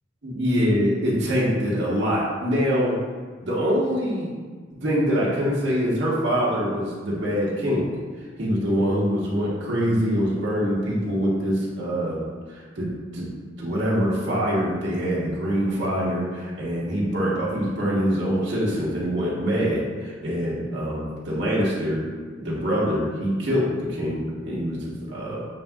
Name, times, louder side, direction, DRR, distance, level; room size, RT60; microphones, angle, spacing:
voice 1, 0.2-3.0 3.4-4.3 4.8-7.9 8.4-12.2 12.5-13.3 13.6-22.0 22.3-25.5, equal, 80° right, -6 dB, 1.3 m, -24 dB
7.2 x 2.7 x 2.3 m, 1.5 s
head